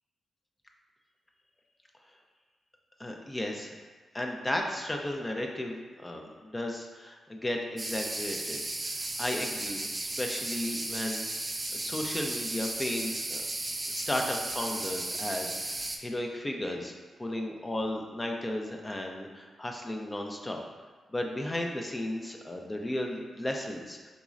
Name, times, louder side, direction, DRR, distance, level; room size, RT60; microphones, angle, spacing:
voice 1, 3.0-3.8 4.1-8.6 9.2-11.3 11.7-13.5 13.9-16.9 17.2-20.6 21.1-24.1, left 1 dB, 25° left, 1 dB, 0.5 m, -34 dB
sound 1, 7.8-16.0, right 2 dB, 30° right, 0.4 m, -35 dB
4.0 x 2.9 x 2.4 m, 1.4 s
supercardioid pair, 45°, 0 cm